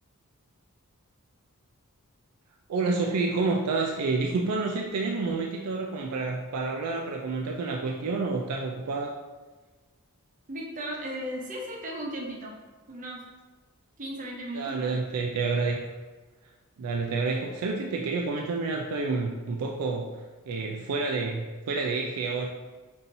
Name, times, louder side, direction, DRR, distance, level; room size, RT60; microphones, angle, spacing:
voice 1, 2.7-9.1 14.5-15.8 16.8-20.2 20.5-22.5, right 3 dB, 85° right, 1 dB, 0.4 m, -29 dB
voice 2, 10.5-12.6 12.9-13.2 14.0-14.9, right 1 dB, 35° right, -1 dB, 0.7 m, -36 dB
5.3 x 2.8 x 2.6 m, 1.3 s
head